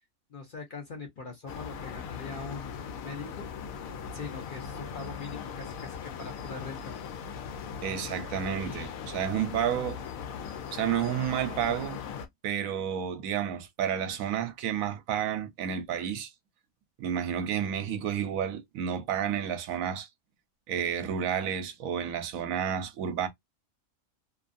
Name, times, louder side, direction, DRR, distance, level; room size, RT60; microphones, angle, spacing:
voice 1, 0.3-3.5 4.1-7.0, left 4 dB, 50° left, 0.7 m, -42 dB
sound 1, 1.5-12.3, left 7 dB, 85° left, 1.0 m, -39 dB
voice 2, 7.8-10.0 10.7-12.0 12.4-16.3 17.0-20.1 20.7-23.3, right 9 dB, 80° right, 1.0 m, -31 dB
2.7 x 2.3 x 2.5 m
omnidirectional pair, 1.4 m